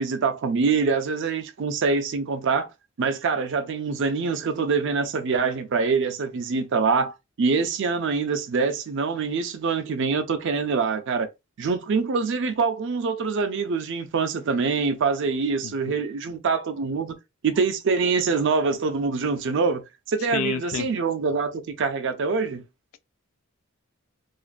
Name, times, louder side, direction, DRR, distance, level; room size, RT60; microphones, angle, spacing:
voice 1, 0.0-2.7 3.0-7.1 7.4-11.3 11.6-17.2 17.4-19.8 20.1-22.6, right 4 dB, 60° right, 0.4 m, -24 dB
voice 2, 15.6-16.0 20.3-20.9, left 8 dB, 75° left, 0.3 m, -30 dB
2.5 x 2.1 x 2.4 m
head